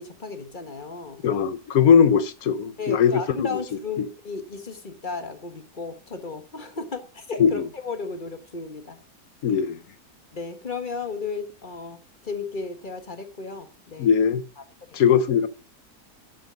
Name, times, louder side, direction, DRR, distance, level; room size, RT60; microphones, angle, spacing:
voice 1, 0.0-1.2 2.8-9.0 10.3-14.1, left 4 dB, 30° left, 1.3 m, -34 dB
voice 2, 1.2-3.6 4.0-4.1 7.4-7.7 9.4-9.8 14.0-14.4 14.9-15.5, left 7 dB, 65° left, 1.2 m, -20 dB
9.4 x 9.2 x 5.2 m
omnidirectional pair, 1.8 m